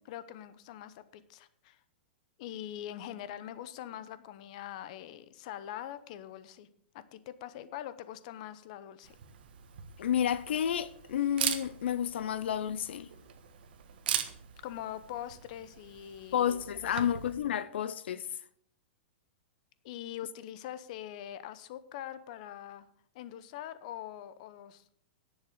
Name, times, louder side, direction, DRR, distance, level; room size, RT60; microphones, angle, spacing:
voice 1, 0.0-1.8 2.4-6.7 6.9-9.2 14.6-16.5 16.7-17.1 19.8-22.9 23.1-24.8, left 11 dB, 40° left, 0.8 m, -43 dB
Camera, 9.0-17.4, right 9 dB, 60° right, 1.4 m, -40 dB
voice 2, 10.0-13.1 16.3-18.3, left 9 dB, 80° left, 0.6 m, -31 dB
10.5 x 7.2 x 6.5 m
supercardioid pair, 170°, 6 cm